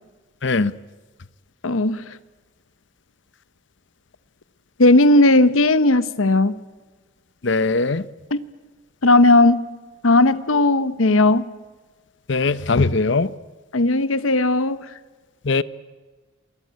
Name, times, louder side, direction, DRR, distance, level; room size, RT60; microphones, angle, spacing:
voice 1, 0.4-0.7 7.4-8.1 12.3-13.3 15.4-15.6, left 3 dB, 60° left, 0.8 m, -20 dB
voice 2, 1.6-2.0 4.8-6.5 8.3-8.4 9.0-9.7 10.0-11.5 13.7-14.8, left 2 dB, 80° left, 1.0 m, -16 dB
27.0 x 19.5 x 9.4 m
head